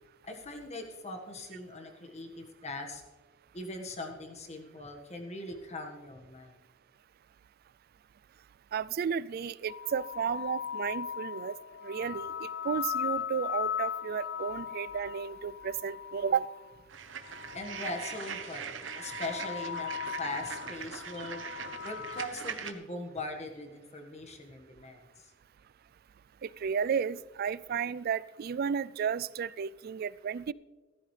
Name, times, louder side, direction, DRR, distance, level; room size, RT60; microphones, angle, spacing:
voice 1, 0.2-3.0 3.5-6.6 17.5-21.4 21.8-25.3, left 2 dB, 35° left, 3 dB, 1.6 m, -41 dB
voice 2, 8.7-11.6 11.8-16.5 26.4-30.5, right 7 dB, 50° right, 20 dB, 0.3 m, -33 dB
sound 1, 9.7-16.7 17.2-18.6 18.9-22.3, left 8 dB, 60° left, 0.4 m, -38 dB
sound 2, 16.9-22.7, right 6 dB, 70° right, 0.9 m, -41 dB
15.0 x 13.5 x 3.3 m, 1.3 s
head